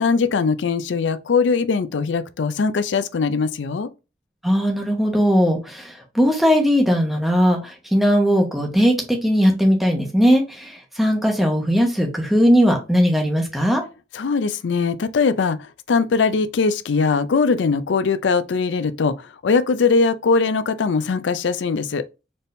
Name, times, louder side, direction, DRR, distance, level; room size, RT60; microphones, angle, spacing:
voice 1, 0.0-3.9 14.1-19.1 19.4-22.0, left 4 dB, 85° left, 0.4 m, -21 dB
voice 2, 4.4-13.8, equal, ahead, 1.0 m, -18 dB
4.1 x 3.6 x 2.6 m
head